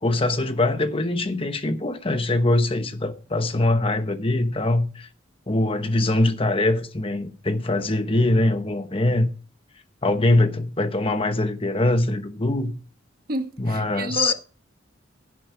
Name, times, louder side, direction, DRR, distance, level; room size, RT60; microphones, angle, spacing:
voice 1, 0.0-5.1 5.5-9.3 10.0-12.7 13.6-14.3, left 2 dB, 30° left, 1.1 m, -22 dB
voice 2, 13.3-14.3, right 2 dB, 50° right, 1.3 m, -30 dB
11.0 x 8.7 x 4.7 m
head